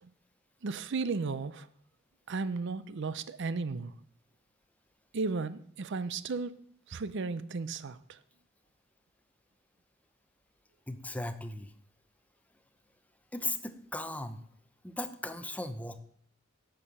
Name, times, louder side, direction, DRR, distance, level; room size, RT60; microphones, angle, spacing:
voice 1, 0.6-1.7 2.3-3.9 5.1-8.2, right 4 dB, 60° right, 0.5 m, -35 dB
voice 2, 10.9-11.7 13.3-14.4 14.8-16.0, left 2 dB, 5° left, 0.6 m, -37 dB
11.0 x 6.7 x 5.4 m
head